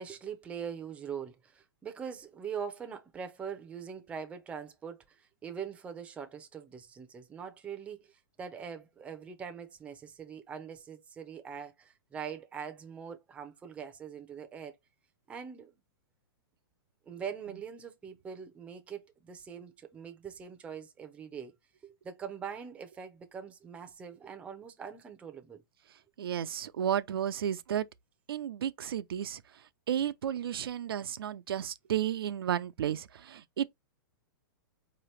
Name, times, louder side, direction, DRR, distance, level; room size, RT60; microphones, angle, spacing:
voice 1, 0.0-8.1 8.4-14.8 15.3-15.7 17.1-21.5 21.8-25.6, right 7 dB, 10° right, 0.6 m, -42 dB
voice 2, 26.2-27.9 28.3-29.4 29.9-33.7, right 10 dB, 85° right, 0.6 m, -32 dB
4.8 x 3.0 x 3.2 m
hypercardioid pair, 155°, 12 cm